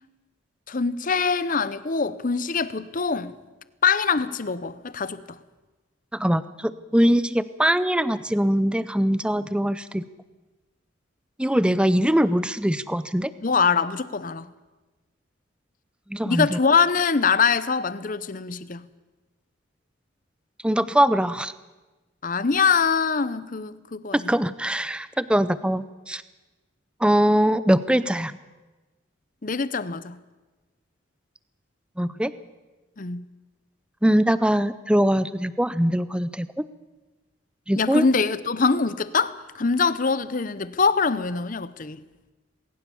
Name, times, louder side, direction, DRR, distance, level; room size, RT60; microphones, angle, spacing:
voice 1, 0.7-3.3 3.8-5.4 13.4-14.5 16.3-18.9 22.2-24.3 29.4-30.2 33.0-33.2 37.8-42.0, left 5 dB, 40° left, 0.7 m, -23 dB
voice 2, 6.1-10.0 11.4-13.3 16.1-16.6 20.6-21.5 24.1-26.2 27.0-28.3 32.0-32.3 34.0-36.6 37.7-38.0, equal, 5° right, 0.5 m, -22 dB
20.0 x 18.0 x 7.1 m
head